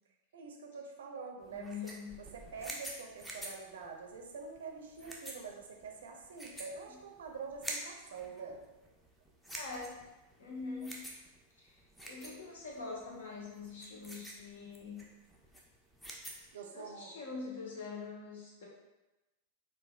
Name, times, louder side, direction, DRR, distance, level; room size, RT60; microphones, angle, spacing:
voice 1, 0.3-1.7 2.2-8.6 16.5-17.1, right 5 dB, 60° right, 2 dB, 0.5 m, -46 dB
sound 1, 1.4-16.5, right 1 dB, 5° left, 0.5 m, -48 dB
voice 2, 1.5-2.2 6.9-7.0 9.5-10.0 10.4-11.0 11.6-15.0 16.7-18.7, left 4 dB, 60° left, -3 dB, 0.9 m, -44 dB
4.0 x 2.3 x 2.4 m, 1.0 s
figure-of-eight pair, 90°, 0 cm